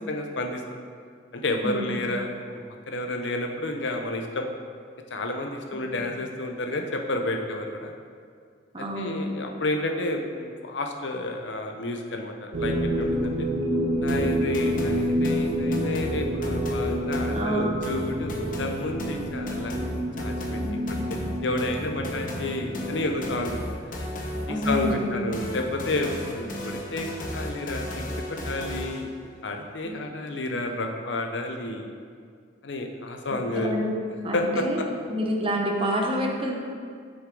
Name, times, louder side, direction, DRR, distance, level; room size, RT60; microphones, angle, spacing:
voice 1, 0.1-0.6 1.3-4.5 5.1-7.9 9.0-13.3 13.9-19.7 20.2-20.6 21.4-23.6 24.5-27.1 27.3-27.9 28.4-29.1 29.4-31.9 32.6-33.7 34.3-34.9, left 2 dB, 70° left, 3 dB, 0.8 m, -30 dB
voice 2, 8.7-9.3 17.3-18.0 20.6-21.0 24.5-25.2 29.8-30.0 33.3-33.9 34.2-34.8 35.1-36.6, equal, 30° right, 0 dB, 0.9 m, -28 dB
sound 1, 12.5-23.7, equal, 80° right, 1.0 m, -29 dB
sound 2, 14.1-29.1, left 1 dB, 45° left, 1.0 m, -34 dB
8.0 x 6.3 x 3.8 m, 2.1 s
head